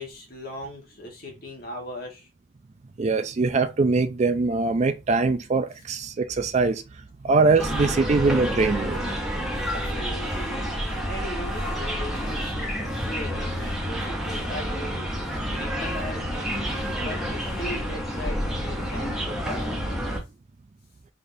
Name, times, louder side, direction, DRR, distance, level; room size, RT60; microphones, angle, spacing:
voice 1, 0.0-2.3 9.6-20.0, left 1 dB, 50° left, 1.4 m, -39 dB
voice 2, 3.0-6.8 7.2-9.0, right 3 dB, 35° right, 0.3 m, -22 dB
sound 1, 7.6-20.2, equal, ahead, 0.9 m, -29 dB
3.9 x 3.4 x 2.6 m
head